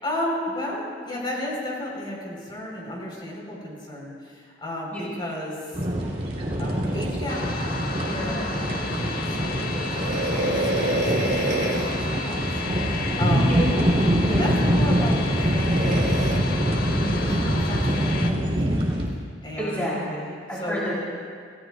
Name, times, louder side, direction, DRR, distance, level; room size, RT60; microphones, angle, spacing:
voice 1, 0.0-5.8 6.6-7.4 8.0-12.5 13.2-13.6 14.3-16.3 16.9-18.9 19.4-20.1 20.6-20.9, left 1 dB, 25° left, -4 dB, 4.6 m, -33 dB
sound 1, 5.7-19.1, equal, 35° right, 3.3 m, -24 dB
sound 2, 7.3-18.3, left 4 dB, 50° left, 1.3 m, -33 dB
sound 3, 9.9-12.0 13.8-14.0 15.6-16.4, right 1 dB, 80° right, 2.6 m, -26 dB
voice 2, 19.6-20.9, equal, 10° left, -8 dB, 3.8 m, -30 dB
28.0 x 17.5 x 2.5 m, 2.1 s
head